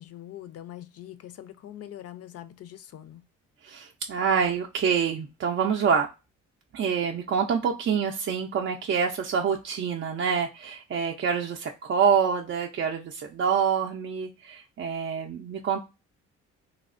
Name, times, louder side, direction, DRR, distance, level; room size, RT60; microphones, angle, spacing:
voice 1, 0.0-3.2, left 12 dB, 55° left, 0.5 m, -43 dB
voice 2, 3.6-6.1 6.7-15.8, right 6 dB, 45° right, 0.4 m, -26 dB
3.3 x 2.0 x 2.4 m
cardioid pair, 90°, 30 cm